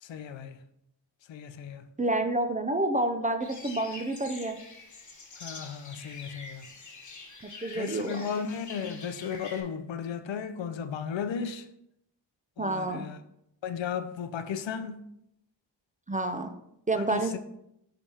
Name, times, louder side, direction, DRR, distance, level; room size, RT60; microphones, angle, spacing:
voice 1, 0.0-0.6 1.3-1.8 5.4-6.7 7.7-11.7 12.6-13.2 13.6-15.1 17.0-17.4, left 7 dB, 70° left, 0.6 m, -35 dB
voice 2, 2.0-4.6 7.6-8.3 12.6-13.1 16.1-16.6 16.9-17.4, right 2 dB, 20° right, 0.4 m, -29 dB
sound 1, 3.4-9.6, left 3 dB, 40° left, 1.2 m, -45 dB
9.8 x 3.4 x 2.8 m
cardioid pair, 75°, 46 cm